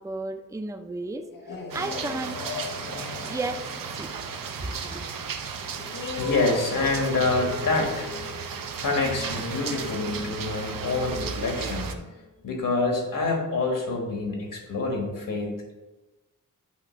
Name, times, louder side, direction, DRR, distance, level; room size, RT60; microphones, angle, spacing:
voice 1, 0.0-2.4 3.3-4.1 4.6-5.0, right 2 dB, 10° right, 7 dB, 0.4 m, -34 dB
sound 1, 1.2-12.4, left 4 dB, 90° left, 1.1 m, -39 dB
sound 2, 1.7-12.0, right 6 dB, 85° right, 0.7 m, -35 dB
voice 2, 6.2-8.1 8.8-11.9 12.4-15.7, left 3 dB, 75° left, 1 dB, 1.8 m, -27 dB
8.4 x 3.1 x 5.8 m, 1.1 s
wide cardioid pair, 110°, 33 cm